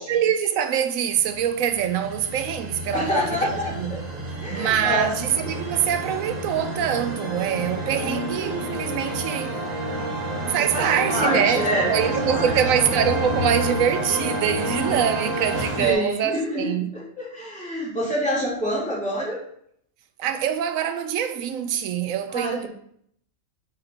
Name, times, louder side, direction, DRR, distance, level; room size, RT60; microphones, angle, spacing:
voice 1, 0.0-4.1 4.5-9.6 10.5-16.9 20.2-22.7, right 9 dB, 85° right, 1.0 m, -24 dB
sound 1, 1.2-15.9, right 1 dB, 35° right, 0.9 m, -29 dB
voice 2, 2.9-3.7 4.4-5.2 8.0-8.5 10.7-12.5 14.6-15.2 15.8-19.4 22.3-22.7, equal, 5° left, 2.8 m, -27 dB
4.8 x 4.8 x 4.5 m
omnidirectional pair, 1.4 m